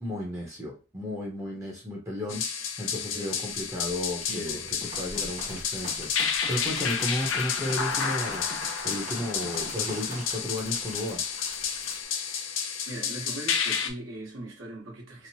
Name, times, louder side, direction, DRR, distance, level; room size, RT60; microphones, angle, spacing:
voice 1, 0.0-2.4 2.8-8.5 8.8-11.2, left 1 dB, 15° right, 0.6 m, -34 dB
sound 1, 2.3-13.9, left 7 dB, 75° left, 0.4 m, -31 dB
sound 2, 3.1-3.2 3.5-12.0, left 1 dB, 35° left, 0.7 m, -46 dB
voice 2, 3.1-3.5 12.9-15.3, right 1 dB, 80° right, 1.1 m, -40 dB
sound 3, 4.8-10.4, right 1 dB, 40° right, 0.9 m, -42 dB
2.9 x 2.0 x 2.7 m
head